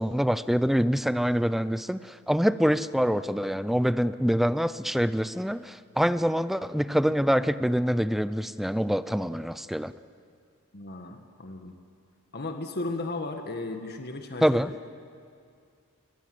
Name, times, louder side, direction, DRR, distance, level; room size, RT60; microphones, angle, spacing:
voice 1, 0.0-9.9 14.4-14.7, equal, ahead, 14 dB, 0.5 m, -25 dB
voice 2, 10.7-11.7 12.3-14.6, left 2 dB, 45° left, 5 dB, 1.6 m, -35 dB
28.0 x 21.5 x 7.8 m, 2.3 s
head